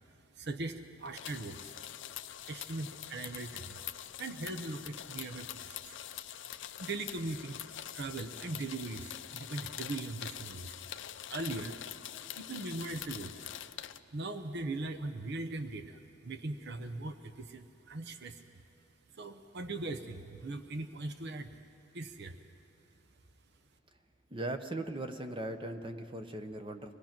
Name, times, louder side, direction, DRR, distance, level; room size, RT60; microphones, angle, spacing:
voice 1, 0.3-1.8 2.4-3.8 4.2-6.0 6.4-6.5 6.8-7.6 7.9-10.8 11.3-11.8 12.4-13.5 13.9-18.6 19.1-21.5 21.9-22.4, right 2 dB, 55° right, 8 dB, 0.8 m, -40 dB
sound 1, 1.1-14.0, left 11 dB, 60° left, 0.5 m, -44 dB
voice 2, 24.3-26.9, right 1 dB, 25° right, 7 dB, 0.9 m, -39 dB
25.0 x 18.5 x 6.0 m, 2.6 s
head